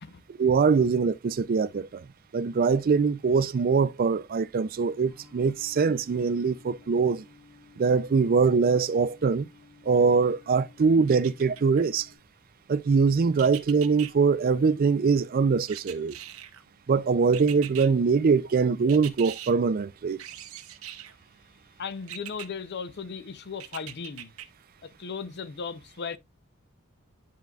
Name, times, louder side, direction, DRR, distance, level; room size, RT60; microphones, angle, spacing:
voice 1, 0.4-2.0 2.3-7.2 7.8-9.5 9.9-12.1 12.7-16.2 16.9-20.2, right 5 dB, 40° right, 0.4 m, -23 dB
sound 1, 5.1-12.2, left 4 dB, 80° left, 5.2 m, -55 dB
sound 2, 11.1-11.9 13.4-14.1 15.7-16.6 17.3-17.9 18.9-19.5 20.2-21.2 22.1-22.5 23.6-24.5 24.9-25.0, right 12 dB, 70° right, 0.7 m, -41 dB
voice 2, 21.8-24.3 24.8-26.2, left 5 dB, 50° left, 0.6 m, -36 dB
10.5 x 4.6 x 2.3 m
head